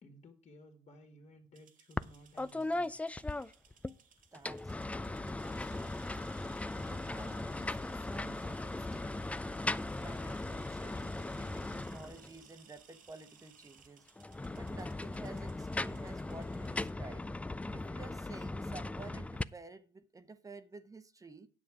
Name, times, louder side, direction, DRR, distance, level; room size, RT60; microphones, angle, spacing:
voice 1, 0.0-3.0 3.6-3.8 4.1-4.2, equal, 40° left, 2.1 m, -57 dB
sound 1, 1.5-16.9, right 7 dB, 55° right, 1.6 m, -62 dB
sound 2, 2.0-2.1 2.4-3.9 4.3-12.4 14.2-19.4, left 2 dB, 10° left, 0.3 m, -38 dB
voice 2, 4.3-6.2 6.7-9.6 10.0-14.1 14.5-17.2 17.7-21.5, right 3 dB, 20° right, 0.9 m, -52 dB
9.7 x 7.4 x 4.9 m
cardioid pair, 110°, 17 cm